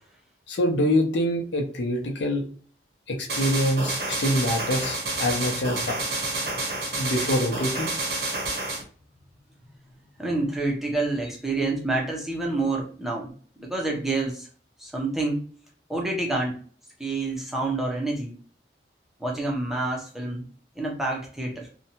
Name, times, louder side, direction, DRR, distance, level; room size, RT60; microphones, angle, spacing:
voice 1, 0.5-2.4 3.1-6.0 7.0-7.9, left 1 dB, 85° left, 1 dB, 0.6 m, -25 dB
sound 1, 3.3-8.8, right 2 dB, 65° right, 0.8 m, -29 dB
voice 2, 6.4-6.9 10.2-14.5 14.8-15.4 15.9-16.6 17.0-18.4 19.2-20.4 20.8-21.7, right 2 dB, ahead, -2 dB, 0.5 m, -28 dB
2.6 x 2.2 x 2.8 m, 0.43 s
head